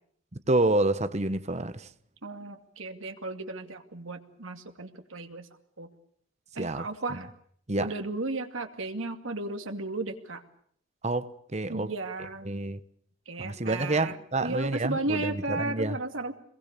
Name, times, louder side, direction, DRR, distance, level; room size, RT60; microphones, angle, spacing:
voice 1, 0.5-1.9 6.6-7.2 7.7-7.9 11.0-11.9 12.4-12.8 13.4-16.0, right 2 dB, 35° right, 1.1 m, -28 dB
voice 2, 2.2-5.5 5.8-5.9 6.5-7.3 7.8-10.4 11.7-12.5 13.3-16.3, right 2 dB, 90° right, 2.4 m, -34 dB
27.0 x 22.0 x 6.9 m
head